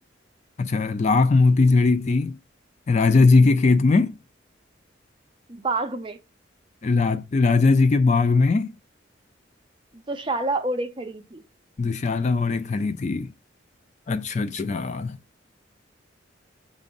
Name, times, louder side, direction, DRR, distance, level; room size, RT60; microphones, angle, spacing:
voice 1, 0.6-2.4 2.9-4.1 6.8-8.7 11.8-13.3 14.1-15.2, left 3 dB, 35° left, 0.3 m, -20 dB
voice 2, 5.5-6.2 9.9-11.4, right 2 dB, 25° right, 0.6 m, -28 dB
7.2 x 2.6 x 5.2 m
head